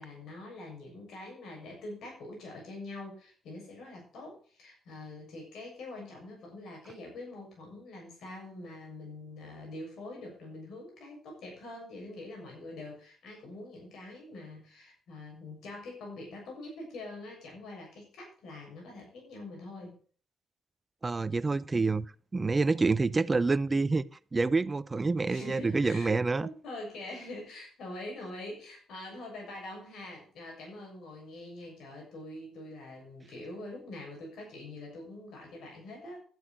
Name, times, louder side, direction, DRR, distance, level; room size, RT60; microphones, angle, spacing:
voice 1, 0.0-20.0 25.2-36.2, left 2 dB, 75° left, 6.8 m, -44 dB
voice 2, 21.0-22.1 22.3-24.0 24.3-26.5, right 3 dB, 25° right, 0.7 m, -27 dB
11.0 x 8.6 x 6.1 m
cardioid pair, 90°, 0 cm